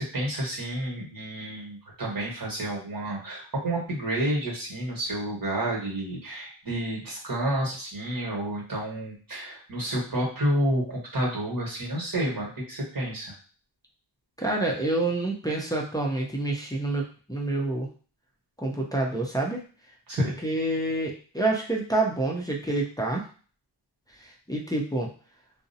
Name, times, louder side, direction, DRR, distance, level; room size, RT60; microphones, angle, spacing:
voice 1, 0.0-13.3 20.1-20.3, right 1 dB, 45° right, -3 dB, 1.3 m, -30 dB
voice 2, 14.4-17.9 18.6-19.7 20.2-23.2 24.1-25.1, right 2 dB, 10° left, -2 dB, 0.5 m, -28 dB
2.5 x 2.0 x 2.6 m, 0.39 s
cardioid pair, 55°, 46 cm